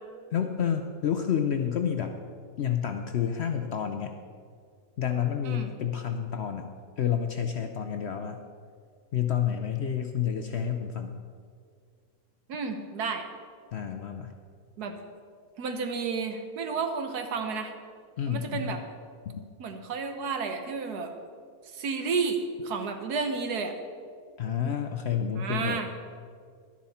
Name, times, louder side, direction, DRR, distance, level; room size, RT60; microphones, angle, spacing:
voice 1, 0.3-2.1 2.6-4.1 5.0-6.7 7.0-8.4 9.1-11.1 13.7-14.3 18.2-18.7 24.4-25.8, left 8 dB, 65° left, 6 dB, 0.7 m, -29 dB
voice 2, 12.5-13.3 14.8-15.0 15.6-17.7 18.3-18.8 19.6-21.1 21.7-23.8 25.4-25.9, right 5 dB, 85° right, 6 dB, 1.5 m, -31 dB
12.0 x 10.5 x 4.2 m, 2.1 s
omnidirectional pair, 1.7 m